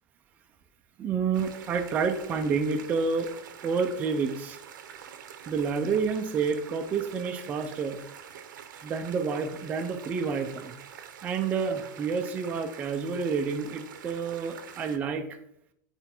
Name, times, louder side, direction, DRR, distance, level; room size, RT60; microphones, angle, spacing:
voice 1, 1.0-3.3 3.6-4.6 5.5-8.0 8.8-10.7 11.2-15.3, right 5 dB, 15° right, 5 dB, 0.4 m, -29 dB
sound 1, 1.3-15.0, right 8 dB, 90° right, 0.9 m, -46 dB
9.2 x 4.4 x 4.3 m, 0.73 s
supercardioid pair, 175°, 10 cm